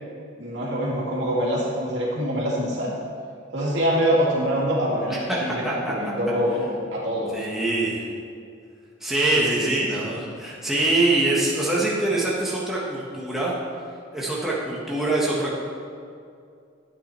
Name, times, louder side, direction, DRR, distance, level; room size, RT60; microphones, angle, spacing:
voice 1, 0.4-3.0 3.5-7.3 9.4-10.2, equal, 65° right, -5 dB, 2.6 m, -25 dB
voice 2, 5.3-5.9 7.3-8.1 9.0-13.5 14.1-15.6, right 2 dB, ahead, -6 dB, 1.3 m, -24 dB
12.0 x 8.7 x 4.3 m, 2.4 s
head